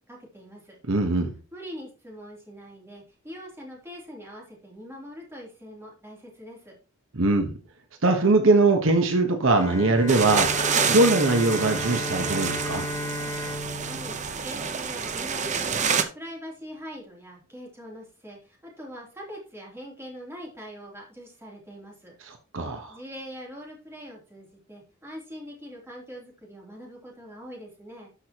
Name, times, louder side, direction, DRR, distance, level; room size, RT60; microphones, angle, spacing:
voice 1, 0.1-0.8 1.5-6.8 13.8-14.2 14.4-22.1 22.9-28.1, equal, 10° right, -3 dB, 3.1 m, -42 dB
voice 2, 0.9-1.3 7.1-7.6 8.0-12.9 22.3-23.0, right 2 dB, 65° right, 5 dB, 1.1 m, -22 dB
Bowed string instrument, 9.6-15.3, left 1 dB, 15° left, 0.8 m, -34 dB
sound 1, 10.1-16.0, right 6 dB, 35° right, 0.8 m, -28 dB
12.5 x 6.1 x 3.0 m, 0.34 s
head